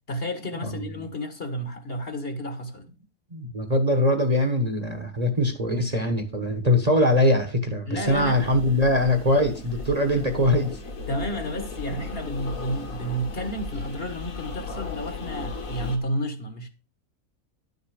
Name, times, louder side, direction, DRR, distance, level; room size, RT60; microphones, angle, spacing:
voice 1, 0.1-2.9 7.9-8.4 10.2-10.3 11.1-16.7, equal, 45° left, 1.5 m, -31 dB
voice 2, 3.3-10.8, left 1 dB, 30° right, 1.2 m, -22 dB
sound 1, 8.0-16.0, left 4 dB, 65° left, 2.2 m, -36 dB
11.0 x 6.8 x 4.9 m
omnidirectional pair, 1.5 m